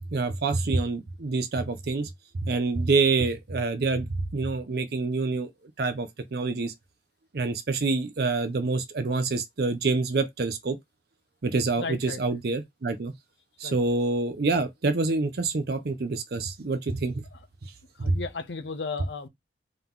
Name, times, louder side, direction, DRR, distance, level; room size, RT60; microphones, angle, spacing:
voice 1, 0.1-2.1 2.4-4.1 4.3-5.5 5.8-6.7 7.3-10.8 11.4-13.1 13.6-17.2 18.0-18.2, right 3 dB, 60° right, 0.5 m, -26 dB
voice 2, 11.8-12.4 13.6-13.8 17.3-17.4 18.0-19.3, left 4 dB, 75° left, 0.7 m, -35 dB
3.8 x 2.9 x 3.6 m
head